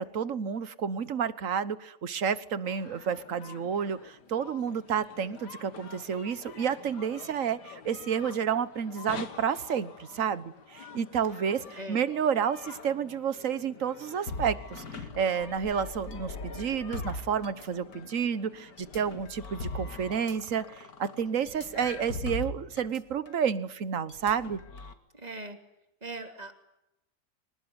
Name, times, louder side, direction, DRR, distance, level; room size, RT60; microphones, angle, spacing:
voice 1, 0.0-24.6, right 7 dB, 55° right, 14 dB, 1.5 m, -30 dB
sound 1, 2.6-22.1, left 6 dB, 80° left, 2.2 m, -48 dB
sound 2, 14.3-18.1 18.8-23.0 23.3-23.4 24.1-24.9, left 3 dB, 65° left, 2.5 m, -40 dB
voice 2, 25.1-25.6 26.0-26.5, right 2 dB, 25° right, 5 dB, 3.1 m, -40 dB
26.0 x 19.0 x 9.8 m, 0.84 s
omnidirectional pair, 1.8 m